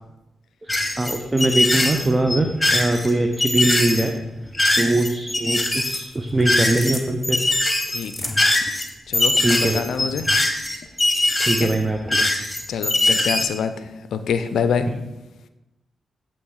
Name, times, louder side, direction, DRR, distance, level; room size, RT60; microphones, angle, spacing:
voice 1, 0.6-4.1 4.7-7.4 9.4-9.8 11.4-12.2 14.9-15.0, right 2 dB, 25° right, 5 dB, 0.5 m, -22 dB
sound 1, 0.7-7.0 7.2-13.4, left 2 dB, 20° left, 1.2 m, -21 dB
sound 2, 5.3-10.3, equal, 5° right, 1.1 m, -39 dB
voice 2, 7.9-8.4 9.1-10.3 11.6-11.7 12.7-14.9, left 6 dB, 75° left, 10 dB, 0.4 m, -26 dB
8.2 x 3.0 x 4.6 m, 1.0 s
supercardioid pair, 40°, 0 cm